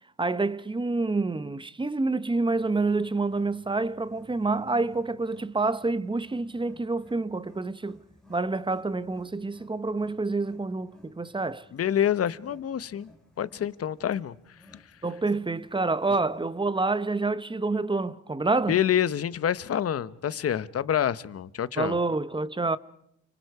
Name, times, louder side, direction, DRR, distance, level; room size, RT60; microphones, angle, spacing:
voice 1, 0.2-8.0 8.3-11.7 15.0-18.8 21.8-22.8, right 3 dB, 15° right, 1.0 m, -28 dB
Wild animals, 2.5-16.8, left 2 dB, ahead, 5.0 m, -56 dB
voice 2, 11.7-13.1 13.4-14.3 14.7-14.8 18.7-22.0, left 9 dB, 50° left, 1.1 m, -27 dB
30.0 x 26.5 x 4.9 m
cardioid pair, 90°, 30 cm